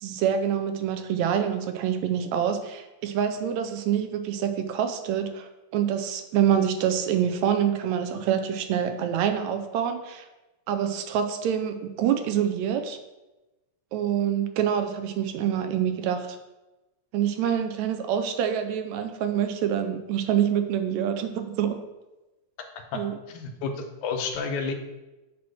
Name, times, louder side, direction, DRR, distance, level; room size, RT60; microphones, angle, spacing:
voice 1, 0.0-10.2 10.7-13.0 13.9-16.3 17.1-21.8 22.9-23.1, right 9 dB, 80° right, 8 dB, 1.8 m, -26 dB
voice 2, 23.3-24.7, left 5 dB, 85° left, 4 dB, 2.2 m, -31 dB
8.5 x 2.9 x 6.2 m, 1.1 s
omnidirectional pair, 3.4 m